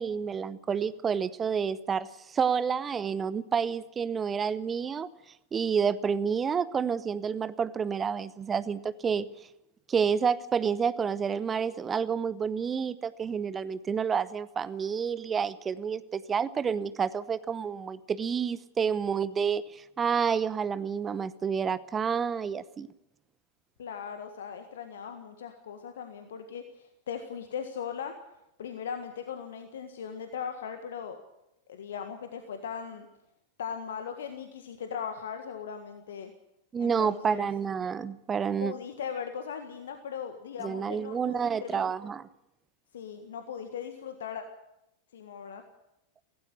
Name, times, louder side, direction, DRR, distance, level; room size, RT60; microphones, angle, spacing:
voice 1, 0.0-5.1 5.5-9.3 9.9-22.9 36.7-38.7 40.6-42.3, right 6 dB, 20° right, 17 dB, 0.9 m, -29 dB
voice 2, 23.8-28.2 28.6-31.2 31.7-33.1 33.6-36.3 36.8-37.5 38.6-41.8 42.9-44.4 45.1-45.6, left 7 dB, 60° left, 7 dB, 1.7 m, -38 dB
17.0 x 16.0 x 10.0 m, 0.86 s
figure-of-eight pair, 90°, 0 cm